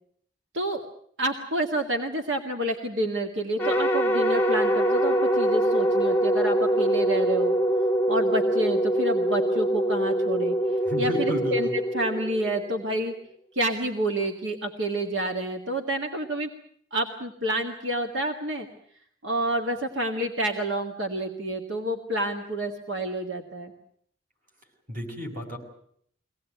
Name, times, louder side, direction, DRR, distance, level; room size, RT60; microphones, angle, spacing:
voice 1, 1.2-7.6 8.1-10.6 11.0-11.7 11.9-13.1 13.5-16.5 16.9-18.7 19.2-23.7, right 1 dB, 80° right, 3 dB, 1.9 m, -28 dB
sound 1, 3.6-12.9, right 1 dB, 10° left, 0.9 m, -24 dB
voice 2, 10.9-11.8 24.9-25.6, left 1 dB, 45° right, 2 dB, 6.0 m, -32 dB
23.5 x 18.0 x 9.3 m, 0.66 s
head